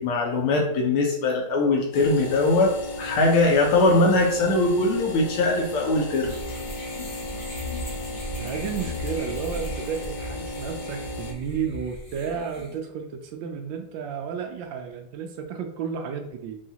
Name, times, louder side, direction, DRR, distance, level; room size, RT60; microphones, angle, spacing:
voice 1, 0.0-2.7 3.0-6.3, left 2 dB, 85° left, 0 dB, 1.8 m, -21 dB
sound 1, 1.9-11.3, left 1 dB, 65° left, 1.2 m, -35 dB
sound 2, 6.1-12.8, left 1 dB, 50° left, 0.7 m, -37 dB
voice 2, 8.4-16.6, right 7 dB, 75° right, 5 dB, 1.1 m, -32 dB
4.8 x 2.8 x 2.8 m, 0.75 s
omnidirectional pair, 2.3 m